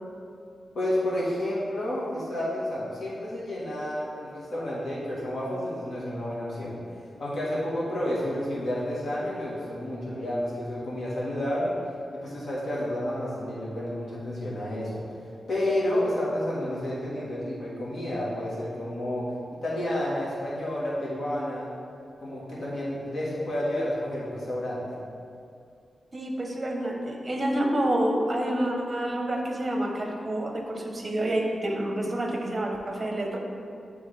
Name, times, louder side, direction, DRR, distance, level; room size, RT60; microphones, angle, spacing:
voice 1, 0.7-6.8 7.2-11.7 12.1-15.0 15.5-21.7 22.2-25.0, left 1 dB, 60° left, -7 dB, 1.4 m, -30 dB
voice 2, 26.1-33.4, right 1 dB, 30° right, 1 dB, 0.9 m, -28 dB
9.4 x 3.4 x 3.3 m, 2.4 s
wide cardioid pair, 100°, 0 cm